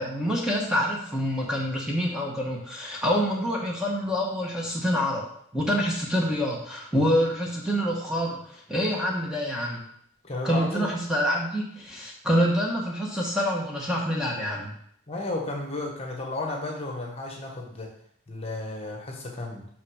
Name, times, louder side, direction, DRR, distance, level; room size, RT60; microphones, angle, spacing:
voice 1, 0.0-5.2 5.5-9.8 10.4-14.7, equal, 5° right, -3 dB, 1.2 m, -26 dB
voice 2, 10.2-10.9 15.1-17.9 18.3-19.7, left 2 dB, 30° left, 1 dB, 1.4 m, -33 dB
5.9 x 5.6 x 4.9 m, 0.67 s
head